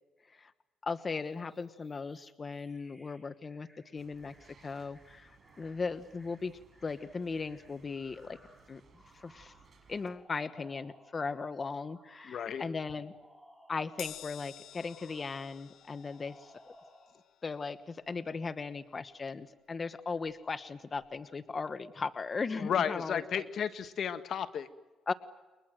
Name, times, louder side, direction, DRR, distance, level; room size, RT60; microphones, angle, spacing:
voice 1, 0.8-3.7 3.9-6.5 6.8-8.4 8.7-8.8 9.1-9.5 9.9-13.1 13.7-16.5 17.4-23.4 25.1-25.2, left 4 dB, 35° left, 10 dB, 1.2 m, -37 dB
sound 1, 1.2-11.4 11.8-14.3 14.7-17.3, equal, 5° left, 6.2 m, -62 dB
sound 2, 3.9-10.2, right 4 dB, 45° right, 6.9 m, -62 dB
voice 2, 12.2-12.6 22.6-24.7, left 8 dB, 65° left, 10 dB, 1.5 m, -33 dB
Crash cymbal, 14.0-20.6 20.9-21.2 22.2-22.3, left 11 dB, 80° left, 0.9 m, -52 dB
30.0 x 23.5 x 7.7 m, 1.2 s
cardioid pair, 90°, 0 cm